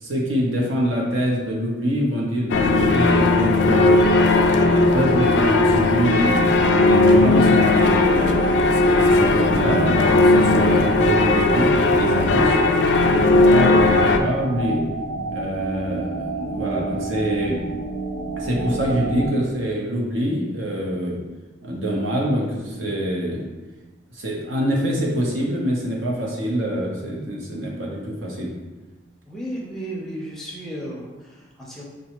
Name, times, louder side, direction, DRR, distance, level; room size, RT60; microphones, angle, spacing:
voice 1, 0.0-4.1 4.6-8.5 8.8-12.6 13.0-14.8 15.3-17.6 18.4-21.2 21.6-23.4 24.1-28.5, equal, 90° right, -2 dB, 0.9 m, -24 dB
sound 1, 2.5-14.2, left 2 dB, 60° left, 0.3 m, -17 dB
sound 2, 6.1-19.3, right 2 dB, 35° right, 0.7 m, -29 dB
voice 2, 29.2-31.8, equal, ahead, -4 dB, 0.6 m, -34 dB
5.2 x 2.3 x 3.0 m, 1.2 s
head